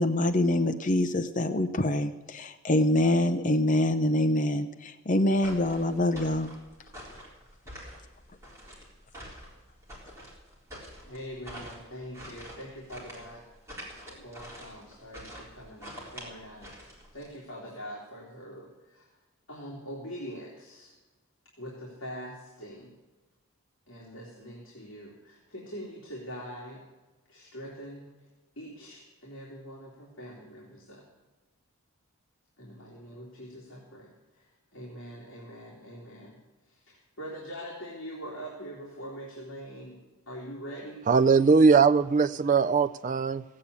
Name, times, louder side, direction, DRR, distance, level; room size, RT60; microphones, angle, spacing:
voice 1, 0.0-6.5, left 1 dB, 35° left, 6 dB, 0.7 m, -25 dB
sound 1, 5.4-17.3, equal, 15° right, 3.9 m, -46 dB
voice 2, 11.0-13.5 13.9-19.1 19.5-20.9 21.6-22.9 23.9-26.8 27.3-28.1 28.6-31.0 32.6-36.4 36.6-40.0 40.3-41.0, equal, 60° left, -4 dB, 3.2 m, -43 dB
voice 3, 41.1-43.4, right 5 dB, 35° right, 14 dB, 0.4 m, -20 dB
16.0 x 8.7 x 8.2 m, 1.2 s
head